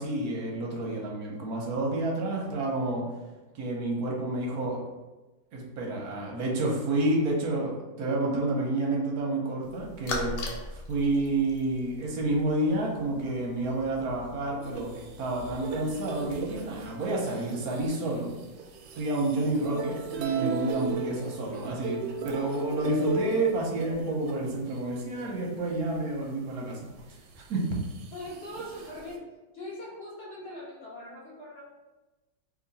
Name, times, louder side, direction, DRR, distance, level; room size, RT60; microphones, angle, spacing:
voice 1, 0.0-3.0 3.5-4.8 5.5-18.3 19.0-26.8 27.4-27.7, right 2 dB, 65° right, -2 dB, 1.1 m, -29 dB
sound 1, 9.6-16.9, left 2 dB, 70° left, 1.2 m, -41 dB
sound 2, 14.6-25.9 26.4-26.5 27.0-29.2, right 5 dB, 90° right, 1.3 m, -37 dB
voice 2, 28.1-29.3 29.5-31.6, left 1 dB, 40° left, -6 dB, 0.9 m, -41 dB
3.0 x 2.8 x 3.9 m, 1.1 s
omnidirectional pair, 2.1 m